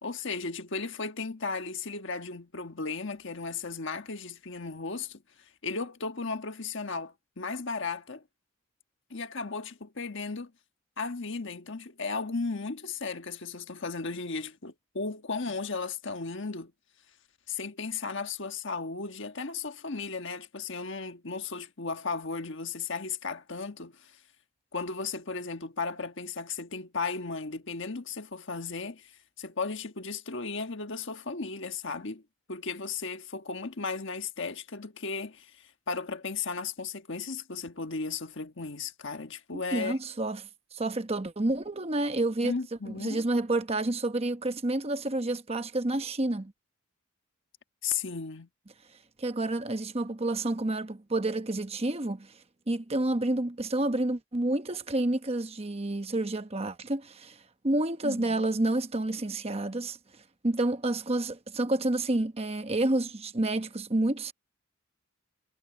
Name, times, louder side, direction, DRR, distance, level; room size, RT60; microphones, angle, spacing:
voice 1, 0.0-5.2 5.6-8.2 9.1-10.5 11.0-16.7 17.5-24.1 24.7-29.1 29.4-32.2 32.5-40.0 42.4-43.2 47.8-48.5 58.0-58.4, left 4 dB, 55° left, 1.4 m, -35 dB
voice 2, 39.5-40.5 40.7-42.5 42.9-46.5 49.2-52.3 52.7-57.4 57.6-60.0 60.4-64.3, right 2 dB, 30° right, 1.0 m, -29 dB
head